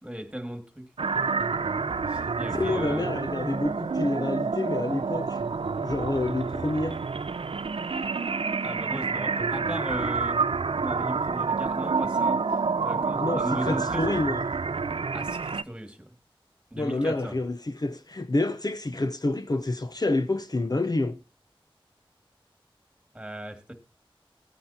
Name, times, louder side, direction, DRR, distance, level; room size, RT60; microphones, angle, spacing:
voice 1, 0.0-0.9 2.1-3.1 8.6-10.4 10.8-14.2 15.1-16.1 16.7-17.4 23.1-23.7, right 1 dB, 10° right, 2.2 m, -36 dB
sound 1, 1.0-15.6, right 4 dB, 85° right, 0.5 m, -28 dB
voice 2, 2.5-5.4 5.8-7.0 13.2-14.4 16.7-21.2, left 2 dB, 45° left, 0.7 m, -28 dB
18.0 x 9.4 x 2.8 m
wide cardioid pair, 45°, 9 cm